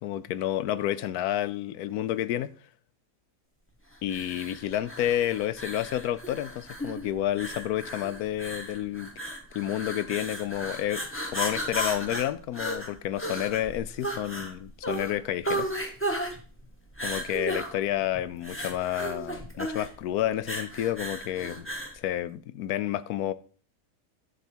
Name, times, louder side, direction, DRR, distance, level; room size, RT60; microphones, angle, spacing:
voice 1, 0.0-2.5 4.0-9.1 9.5-11.1 11.3-15.7 17.0-21.7 21.9-23.3, left 12 dB, 90° left, 1.1 m, -30 dB
sound 1, 4.1-22.0, equal, 10° left, 1.4 m, -35 dB
11.5 x 6.1 x 4.4 m
omnidirectional pair, 1.5 m